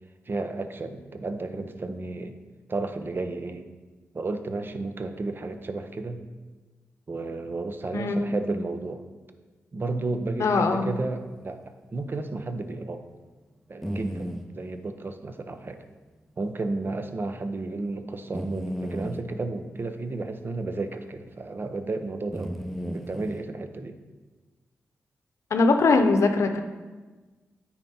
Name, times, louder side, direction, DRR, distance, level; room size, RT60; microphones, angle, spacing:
voice 1, 0.3-2.3 2.7-3.7 4.1-6.2 7.1-9.0 9.7-11.6 11.9-13.0 13.7-15.8 16.4-22.5 22.8-24.0, right 3 dB, 45° right, 8 dB, 0.7 m, -32 dB
voice 2, 7.9-8.3 10.4-11.0 25.5-26.6, left 3 dB, 75° left, 6 dB, 0.7 m, -21 dB
sound 1, 12.1-12.2 12.7-12.8 13.8-14.4 16.4-16.5 16.8-16.9 18.3-19.2 21.3-21.4 22.3-23.4, equal, ahead, 0.7 m, -34 dB
9.0 x 4.4 x 4.2 m, 1.3 s
cardioid pair, 55°, 5 cm